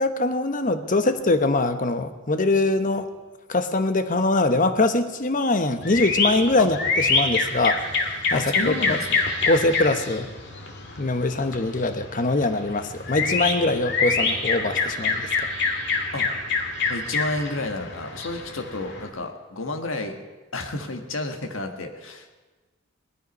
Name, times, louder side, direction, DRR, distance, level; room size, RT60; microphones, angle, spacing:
voice 1, 0.0-3.1 3.5-7.8 8.3-9.0 9.5-10.3 11.0-15.3, left 2 dB, 40° left, 10 dB, 1.0 m, -23 dB
sound 1, 5.8-19.1, left 4 dB, 60° left, 2.0 m, -26 dB
voice 2, 8.3-9.2 16.1-16.3 16.9-20.2 20.5-22.3, left 2 dB, 75° left, 5 dB, 1.5 m, -31 dB
18.5 x 12.5 x 5.4 m, 1.2 s
head